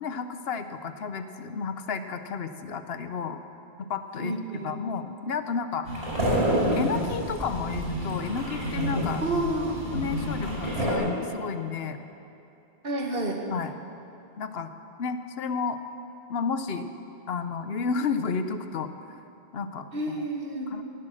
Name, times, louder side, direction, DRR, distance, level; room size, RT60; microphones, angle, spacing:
voice 1, 0.0-3.4 3.8-4.4 4.6-6.0 6.7-9.2 9.9-12.0 13.5-13.7 14.4-14.7 15.0-15.8 16.3-16.9 17.3-18.9 19.5-20.2 20.7-20.8, left 5 dB, 70° left, 9 dB, 1.0 m, -32 dB
voice 2, 4.2-4.7 9.2-9.8 10.4-10.5 12.8-13.4 19.9-20.7, right 1 dB, 60° right, 2 dB, 1.7 m, -29 dB
sound 1, 5.9-10.9, equal, 85° right, 4.9 m, -28 dB
16.0 x 10.5 x 6.4 m, 2.7 s
omnidirectional pair, 1.1 m